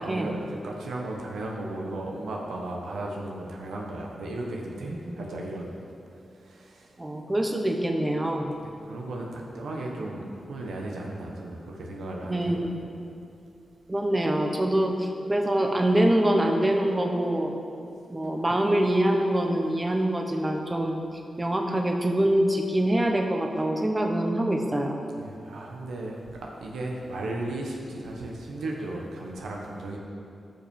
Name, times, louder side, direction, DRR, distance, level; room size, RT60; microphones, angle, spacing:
voice 1, 0.0-5.7 6.4-6.9 8.6-12.6 25.2-30.0, right 2 dB, 90° right, -1 dB, 1.3 m, -35 dB
voice 2, 4.9-5.2 7.0-8.5 12.2-12.8 13.9-17.5 18.1-21.0 21.4-25.0, right 1 dB, 25° right, 2 dB, 1.3 m, -25 dB
13.5 x 5.6 x 5.4 m, 2.5 s
cardioid pair, 55°, 0 cm